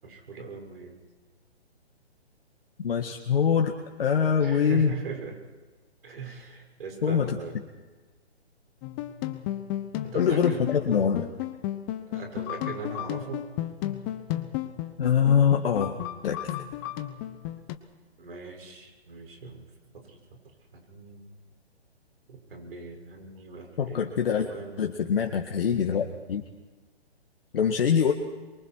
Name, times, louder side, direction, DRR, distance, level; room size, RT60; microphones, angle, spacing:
voice 1, 0.0-0.9 4.4-5.4 6.0-7.6 10.0-10.7 12.1-13.5 18.2-19.6 19.9-21.3 22.3-24.9, right 4 dB, 60° right, 3 dB, 6.6 m, -40 dB
voice 2, 2.8-4.9 7.0-7.3 10.1-11.3 15.0-16.0 16.2-16.4 23.8-24.5 24.8-26.4 27.5-28.1, left 7 dB, 60° left, 3 dB, 1.9 m, -24 dB
sound 1, 8.8-17.8, left 13 dB, 20° left, 1.0 m, -34 dB
26.0 x 23.5 x 4.7 m, 1.3 s
hypercardioid pair, 145°, 33 cm